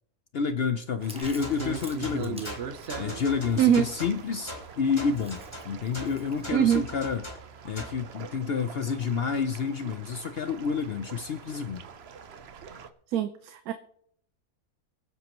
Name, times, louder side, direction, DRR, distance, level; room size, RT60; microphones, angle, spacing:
voice 1, 0.3-2.6 3.0-7.2 7.6-11.8, left 5 dB, 60° left, 0.6 m, -29 dB
Chewing mastication, 1.0-6.5, equal, 5° right, 0.8 m, -51 dB
sound 1, 1.0-12.9, right 7 dB, 50° right, 0.9 m, -42 dB
sound 2, 1.2-8.1, equal, 20° left, 2.6 m, -41 dB
voice 2, 3.6-3.9 6.5-6.8 13.1-13.7, right 10 dB, 75° right, 1.1 m, -23 dB
24.0 x 8.2 x 3.0 m
omnidirectional pair, 1.6 m